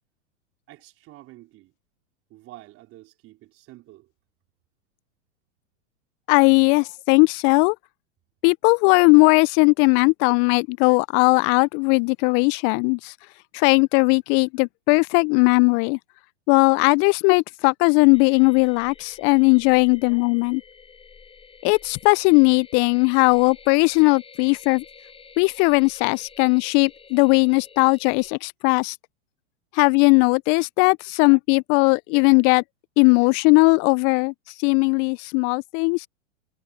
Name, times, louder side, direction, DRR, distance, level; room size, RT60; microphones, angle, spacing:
voice 1, 0.7-1.7 2.3-4.1, right 17 dB, 35° right, 3.8 m, -48 dB
voice 2, 6.3-7.8 8.4-13.1 13.5-16.0 16.5-20.6 21.6-24.8 25.4-29.0 29.7-32.6 33.0-34.3 34.6-36.1, left 35 dB, 30° left, 0.5 m, -18 dB
sound 1, 18.1-28.3, left 5 dB, 15° left, 4.1 m, -49 dB
figure-of-eight pair, 105°, 38 cm